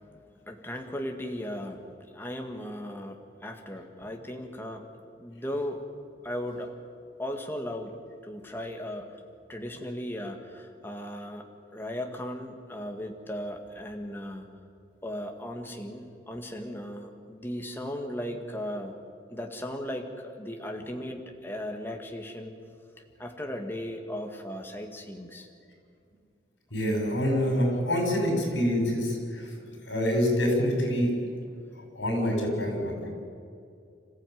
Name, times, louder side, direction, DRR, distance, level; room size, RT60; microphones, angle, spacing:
voice 1, 0.0-1.8 2.1-4.9 5.2-5.9 6.2-6.7 7.2-8.0 8.2-9.2 9.5-14.5 15.0-19.0 19.3-22.5 23.2-25.5, equal, 10° left, 3 dB, 1.8 m, -37 dB
voice 2, 26.7-29.5 29.8-31.1 31.7-33.1, equal, 80° left, 2 dB, 6.6 m, -26 dB
26.5 x 15.0 x 9.3 m, 2.4 s
head